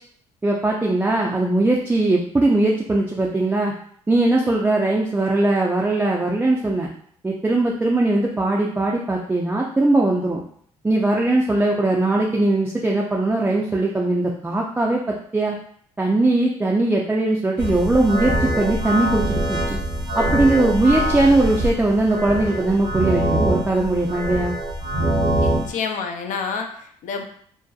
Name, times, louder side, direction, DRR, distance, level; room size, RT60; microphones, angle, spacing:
voice 1, 0.4-3.7 4.1-6.9 7.2-10.4 10.8-15.6 16.0-19.8 20.2-24.5, right 2 dB, 10° right, -2 dB, 0.3 m, -20 dB
sound 1, 17.6-25.7, right 1 dB, 70° right, 0.7 m, -23 dB
voice 2, 25.4-27.2, left 5 dB, 65° left, 4 dB, 0.4 m, -29 dB
2.6 x 2.0 x 2.3 m, 0.62 s
supercardioid pair, 65°, 14 cm